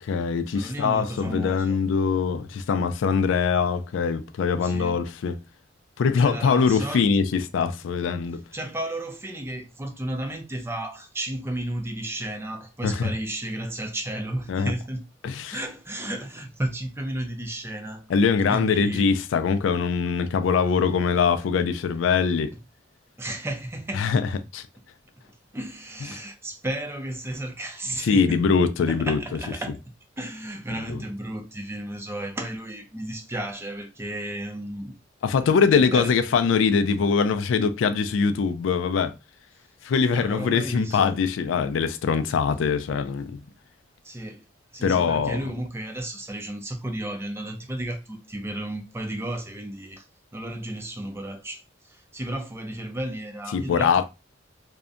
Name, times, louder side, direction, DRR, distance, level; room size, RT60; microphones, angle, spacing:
voice 1, 0.0-5.4 6.0-8.4 12.8-13.1 14.5-14.7 15.2-15.6 18.1-22.5 24.0-24.3 24.5-24.6 28.0-29.2 30.9-31.0 35.2-39.1 39.8-43.4 44.8-45.4 53.5-54.0, left 5 dB, 90° left, 0.3 m, -22 dB
voice 2, 0.5-1.8 4.6-5.0 6.2-7.1 8.5-15.0 15.5-18.0 18.5-19.1 23.2-24.0 25.5-28.4 28.9-29.8 30.2-34.9 35.4-36.1 40.1-41.2 44.0-44.5 44.7-50.0 50.3-54.0, right 1 dB, 15° right, 0.4 m, -33 dB
2.6 x 2.1 x 2.4 m
head